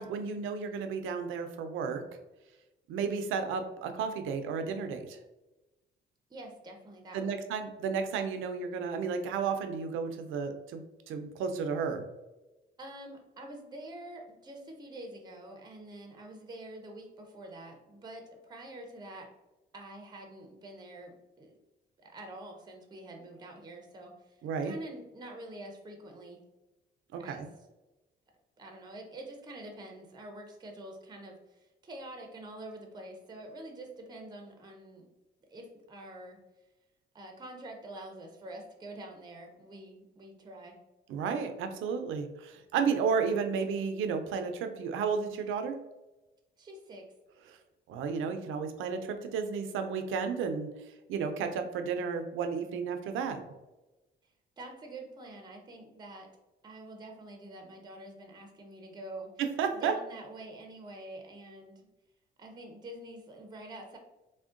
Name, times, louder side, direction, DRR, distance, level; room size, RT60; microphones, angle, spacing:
voice 1, 0.0-2.0 2.9-5.2 7.1-12.1 24.4-24.7 27.1-27.5 41.1-45.8 47.5-47.6 47.9-50.7 51.1-53.4 59.4-59.9, right 6 dB, 85° right, 7 dB, 0.4 m, -32 dB
voice 2, 6.3-7.4 12.8-19.3 19.7-21.5 22.0-26.4 27.2-27.5 28.6-35.1 35.5-36.4 37.1-40.8 46.6-47.1 54.6-56.3 56.6-59.3 59.7-61.8 62.4-64.0, right 1 dB, 20° right, 3 dB, 0.5 m, -46 dB
3.5 x 2.1 x 2.4 m, 1.0 s
cardioid pair, 90°, 20 cm